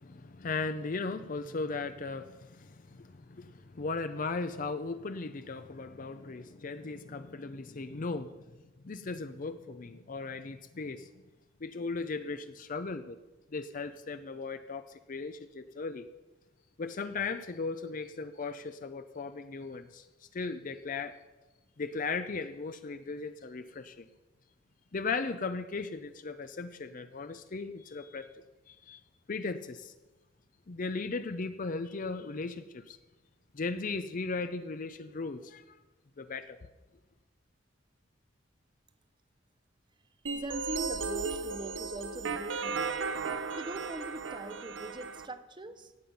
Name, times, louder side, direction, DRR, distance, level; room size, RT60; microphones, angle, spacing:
voice 1, 0.0-8.4 8.8-11.1 11.6-13.2 13.5-16.1 16.8-21.2 21.8-24.1 24.9-29.0 29.3-29.9 30.7-33.0 33.5-35.8 36.2-36.6, left 4 dB, 45° left, 10 dB, 0.5 m, -37 dB
voice 2, 40.3-42.9 43.6-45.9, right 2 dB, 25° right, 11 dB, 0.7 m, -42 dB
sound 1, 40.3-45.3, right 4 dB, 70° right, 0.8 m, -35 dB
17.0 x 7.6 x 5.5 m, 1.1 s
head